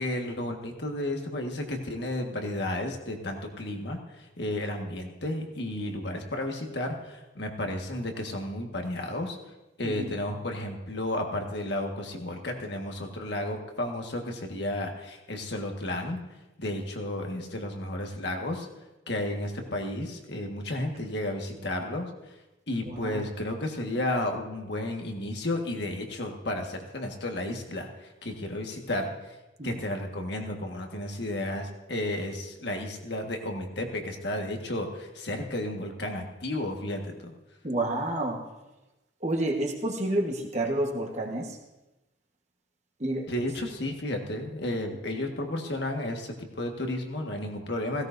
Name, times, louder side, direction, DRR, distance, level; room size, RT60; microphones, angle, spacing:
voice 1, 0.0-9.4 9.8-16.2 16.6-18.7 19.1-22.3 22.7-29.3 29.6-37.3 43.3-48.1, left 1 dB, 60° left, 2 dB, 1.6 m, -32 dB
voice 2, 9.8-10.1 22.9-23.2 29.6-29.8 37.6-38.4 39.2-41.6 43.0-43.3 44.9-45.0, right 1 dB, 35° right, 1 dB, 1.4 m, -29 dB
16.5 x 16.5 x 2.7 m, 1.0 s
head